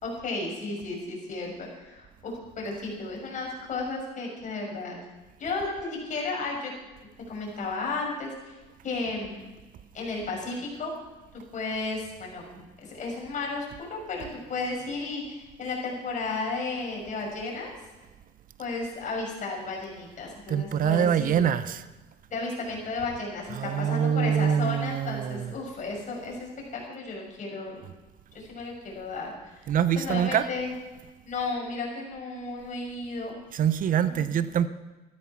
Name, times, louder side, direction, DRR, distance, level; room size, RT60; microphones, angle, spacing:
voice 1, 0.0-4.9 5.4-6.7 7.3-8.6 8.8-9.5 9.9-10.9 11.3-17.7 18.6-21.4 22.3-27.8 28.3-29.6 30.0-30.7 31.2-33.3 34.0-34.4, left 3 dB, 45° left, 6.0 m, -33 dB
voice 2, 20.5-21.9 23.5-25.5 29.7-30.5 33.5-34.7, right 9 dB, 55° right, 0.7 m, -25 dB
14.0 x 13.0 x 5.9 m
cardioid pair, 110°, 17 cm